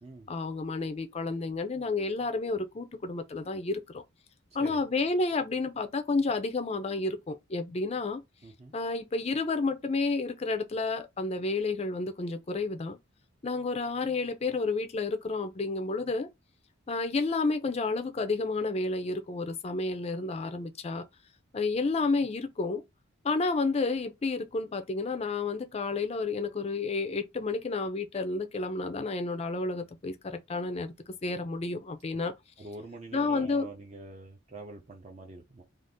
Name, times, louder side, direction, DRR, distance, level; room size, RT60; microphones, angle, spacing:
voice 1, 0.3-4.0 4.5-8.2 8.7-13.0 13.4-16.3 16.9-21.1 21.5-22.8 23.2-32.3 33.1-33.7, left 3 dB, 30° left, 0.4 m, -31 dB
voice 2, 8.4-8.7 32.6-35.6, right 2 dB, 30° right, 0.5 m, -45 dB
2.6 x 2.4 x 3.5 m
head